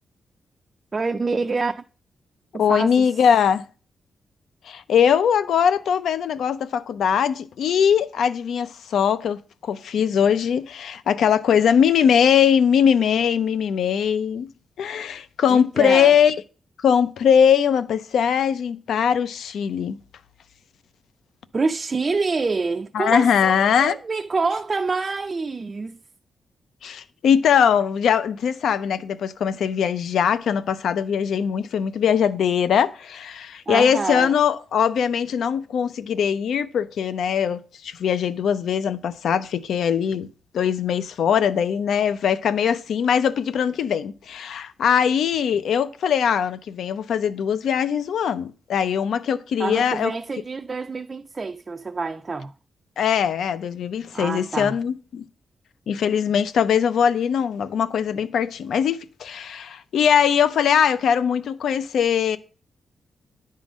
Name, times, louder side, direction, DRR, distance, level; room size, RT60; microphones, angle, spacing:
voice 1, 0.9-1.8 2.5-3.1 15.5-16.1 21.5-26.0 33.7-34.3 49.6-52.5 54.1-54.8, right 4 dB, 25° right, 0.3 m, -27 dB
voice 2, 2.6-3.6 4.7-14.5 14.8-16.4 16.8-20.0 22.9-24.0 26.8-40.3 40.5-50.1 53.0-55.2 55.9-62.4, left 8 dB, 85° left, 0.5 m, -21 dB
10.5 x 3.8 x 6.1 m
wide cardioid pair, 165°, 0 cm